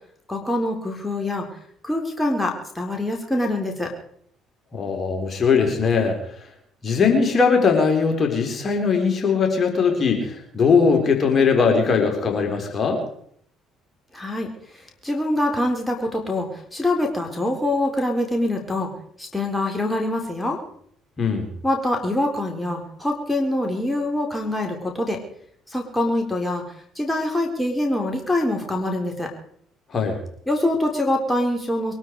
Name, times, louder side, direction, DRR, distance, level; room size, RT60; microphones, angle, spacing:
voice 1, 0.3-1.5 1.8-3.9 14.1-14.5 15.0-18.9 19.2-20.6 21.6-25.2 25.7-26.6 27.0-29.3 30.5-32.0, left 1 dB, 10° left, 1 dB, 4.3 m, -24 dB
voice 2, 4.7-6.2 6.8-13.0 21.2-21.5 29.9-30.2, left 5 dB, 40° left, 3 dB, 4.4 m, -20 dB
23.0 x 12.5 x 4.8 m, 0.65 s
hypercardioid pair, 55°, 0 cm